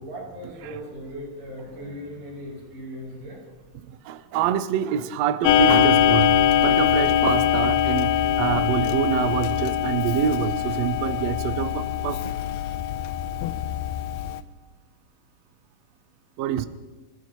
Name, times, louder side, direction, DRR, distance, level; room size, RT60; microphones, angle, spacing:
voice 1, 0.0-3.4 4.2-4.3, equal, 65° right, 8.1 m, -38 dB
voice 2, 4.0-8.1 8.4-12.3 16.4-16.7, right 9 dB, 85° right, 1.4 m, -26 dB
Clock, 5.4-14.4, left 10 dB, 85° left, 2.3 m, -22 dB
27.0 x 15.5 x 3.0 m
omnidirectional pair, 3.8 m